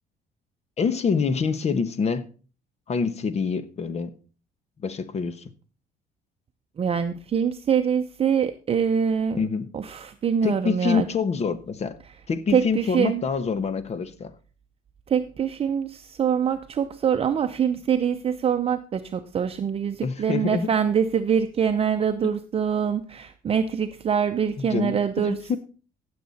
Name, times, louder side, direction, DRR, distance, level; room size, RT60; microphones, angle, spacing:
voice 1, 0.8-2.3 2.9-4.1 4.8-5.5 9.4-9.7 10.4-12.0 12.3-14.3 20.0-20.7 22.2-22.3 24.6-25.6, left 5 dB, 40° left, 1.2 m, -26 dB
voice 2, 6.8-9.4 9.7-11.0 12.5-13.2 15.1-25.6, right 7 dB, 35° right, 0.7 m, -24 dB
16.0 x 6.8 x 4.2 m
cardioid pair, 110°, 17 cm